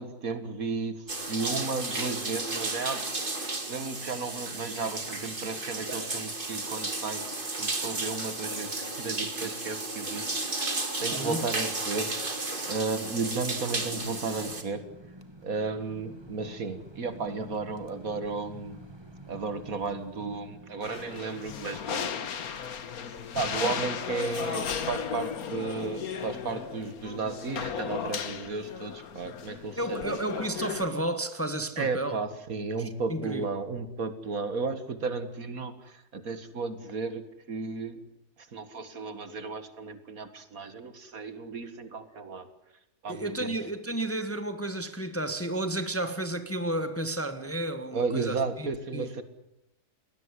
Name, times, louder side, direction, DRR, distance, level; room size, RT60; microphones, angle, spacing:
voice 1, 0.0-3.1 3.4-7.3 7.6-12.2 12.7-14.9 15.4-18.8 19.3-22.7 23.3-30.5 31.8-38.0 38.4-42.5 43.0-43.5 47.9-49.2, right 4 dB, 65° right, 2.2 m, -34 dB
sound 1, 1.1-14.6, right 2 dB, 35° right, 2.5 m, -33 dB
voice 2, 11.1-11.4 29.8-32.2 33.1-33.4 43.1-48.7 48.9-49.1, right 1 dB, 10° left, 1.3 m, -32 dB
sound 2, 13.8-20.8, right 1 dB, 15° right, 1.7 m, -49 dB
sound 3, 20.8-30.9, left 7 dB, 70° left, 1.7 m, -35 dB
21.5 x 17.5 x 9.8 m
omnidirectional pair, 1.6 m